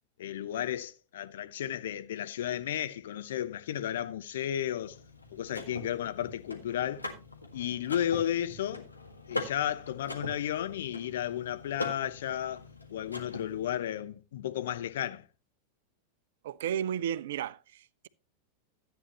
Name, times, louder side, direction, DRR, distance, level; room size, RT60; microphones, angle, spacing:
voice 1, 0.2-5.0 5.3-7.0 7.5-8.9 9.3-12.6 12.9-15.3, left 11 dB, 60° left, 0.7 m, -33 dB
Car / Mechanisms, 4.8-13.7, left 3 dB, 85° left, 1.8 m, -42 dB
voice 2, 16.4-18.1, right 9 dB, 60° right, 0.5 m, -33 dB
13.5 x 8.8 x 3.0 m
figure-of-eight pair, 90°, 0 cm